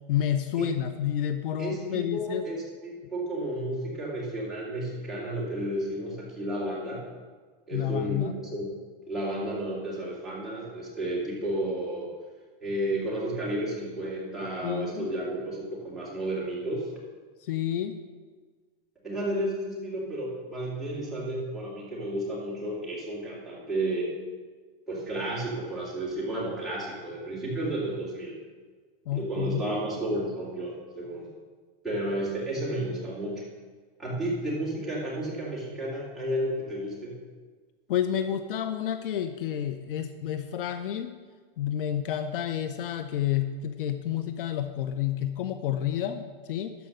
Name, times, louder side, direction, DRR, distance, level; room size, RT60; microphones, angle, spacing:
voice 1, 0.1-2.4 7.7-8.3 14.6-15.1 17.4-18.0 29.1-29.7 37.9-41.1 41.6-46.7, left 10 dB, 65° left, 9 dB, 0.7 m, -30 dB
voice 2, 1.6-7.0 7.7-8.7 9.1-12.1 12.6-16.9 19.0-24.2 24.9-28.4 29.1-31.3 31.8-33.4 34.0-37.2, right 1 dB, ahead, -9 dB, 2.4 m, -32 dB
12.5 x 5.1 x 6.5 m, 1.5 s
supercardioid pair, 170°, 29 cm